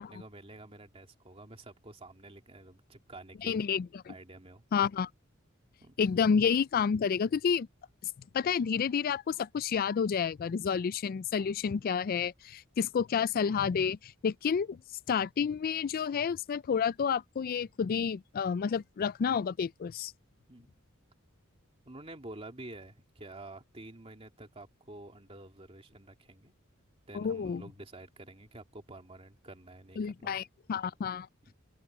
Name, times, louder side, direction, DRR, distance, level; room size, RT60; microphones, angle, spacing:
voice 1, 0.0-3.6 4.1-4.6 5.8-5.9 11.7-11.8 20.5-20.7 21.8-26.5 27.1-30.3 31.4-31.5, right 2 dB, 30° right, 2.8 m, -49 dB
voice 2, 3.4-4.1 4.7-5.1 6.0-7.7 8.3-14.8 15.1-20.1 27.1-27.7 30.0-30.4 30.7-31.3, left 6 dB, 45° left, 0.3 m, -30 dB
head